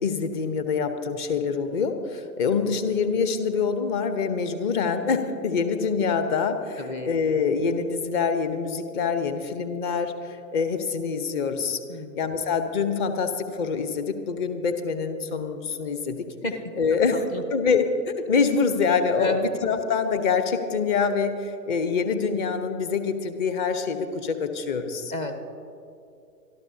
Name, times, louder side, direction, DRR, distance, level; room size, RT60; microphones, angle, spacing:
voice 1, 0.0-11.8 12.2-16.3 16.8-17.2 17.5-17.9 18.2-25.1, left 5 dB, 30° left, 8 dB, 1.0 m, -25 dB
voice 2, 6.8-7.1 11.9-12.2 16.4-16.6 16.9-17.4 19.2-19.5 25.1-25.3, left 2 dB, 15° left, 6 dB, 0.7 m, -30 dB
25.5 x 13.0 x 2.8 m, 2.6 s
figure-of-eight pair, 115°, 49 cm